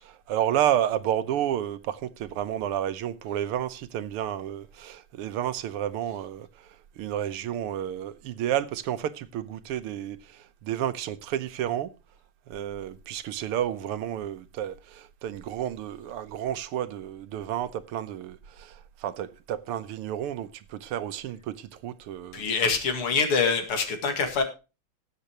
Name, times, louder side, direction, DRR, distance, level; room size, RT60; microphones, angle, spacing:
voice 1, 0.0-6.5 7.0-11.9 12.5-22.5, right 11 dB, 85° right, 1.8 m, -31 dB
voice 2, 22.3-24.4, left 5 dB, 75° left, 3.0 m, -25 dB
20.0 x 8.1 x 2.9 m
omnidirectional pair, 2.4 m